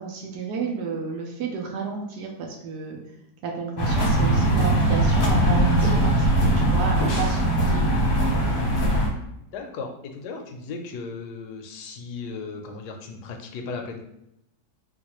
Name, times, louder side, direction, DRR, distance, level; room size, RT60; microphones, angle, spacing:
voice 1, 0.0-3.0 3.4-7.8, right 5 dB, 75° right, 1 dB, 1.2 m, -32 dB
sound 1, 3.8-9.1, right 1 dB, 40° left, 0.9 m, -20 dB
voice 2, 9.5-14.0, left 4 dB, 75° left, 3 dB, 1.1 m, -36 dB
3.9 x 2.5 x 2.9 m, 0.81 s
omnidirectional pair, 1.9 m